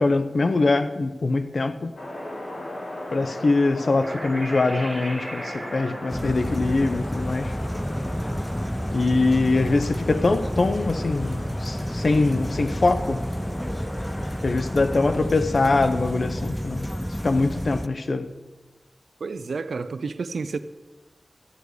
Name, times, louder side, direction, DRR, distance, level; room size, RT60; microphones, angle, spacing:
voice 1, 0.0-1.9 3.1-7.6 8.9-13.2 14.4-16.9 17.2-18.3, left 3 dB, 65° left, 0.7 m, -23 dB
sound 1, 2.0-15.2, left 1 dB, 80° left, 2.8 m, -37 dB
sound 2, 4.0-8.9, right 1 dB, 30° right, 2.9 m, -40 dB
sound 3, 6.1-17.9, equal, 5° left, 0.4 m, -30 dB
voice 2, 19.2-20.6, right 4 dB, 90° right, 0.5 m, -30 dB
14.0 x 4.7 x 8.3 m
wide cardioid pair, 55°, 0 cm